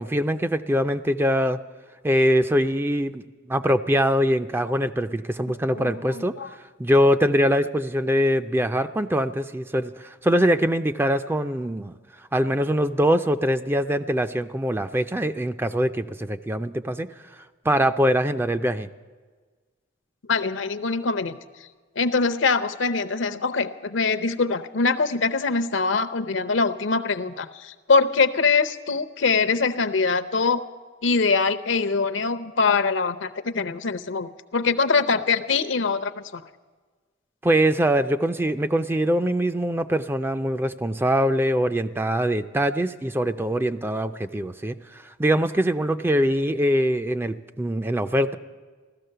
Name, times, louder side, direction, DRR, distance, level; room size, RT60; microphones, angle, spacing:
voice 1, 0.0-1.6 2.0-12.0 12.3-17.1 17.3-18.9 37.4-48.4, equal, 10° right, 9 dB, 0.4 m, -23 dB
voice 2, 5.7-6.5 20.3-21.4 22.0-30.6 31.0-36.4, left 4 dB, 70° left, 10 dB, 0.7 m, -23 dB
15.5 x 13.0 x 6.7 m, 1.4 s
head